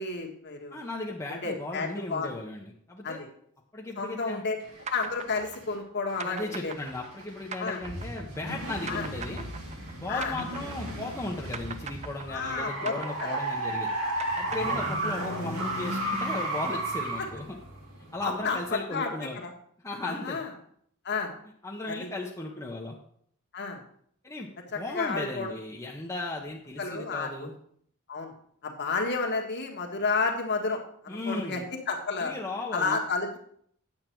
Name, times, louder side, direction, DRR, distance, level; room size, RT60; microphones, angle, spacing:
voice 1, 0.0-0.8 1.3-2.3 3.0-3.3 4.0-4.6 4.9-6.7 7.6-7.8 8.9-9.1 10.1-10.3 12.3-12.9 13.2-13.4 14.6-14.8 17.2-17.3 18.2-19.1 19.4-19.5 20.0-20.5 21.0-21.3 21.8-22.1 23.5-23.8 24.7-25.5 26.8-27.5 28.1-28.3 28.6-30.8 31.0-31.6 31.9-32.3 32.7-33.4, left 4 dB, 50° left, 1 dB, 1.5 m, -31 dB
voice 2, 0.7-3.2 3.7-4.4 6.2-9.5 9.9-13.9 14.4-17.5 18.1-19.4 19.8-20.4 21.6-23.0 24.2-27.5 31.1-31.7 32.2-33.0, left 2 dB, 15° left, -3 dB, 0.8 m, -36 dB
Car Being Stolen, 4.6-5.7 6.1-18.7, right 1 dB, 80° right, 2.8 m, -34 dB
sound 1, 4.9-11.2 11.5-15.4, right 6 dB, 30° right, 0.4 m, -41 dB
8.9 x 7.5 x 4.5 m, 0.65 s
head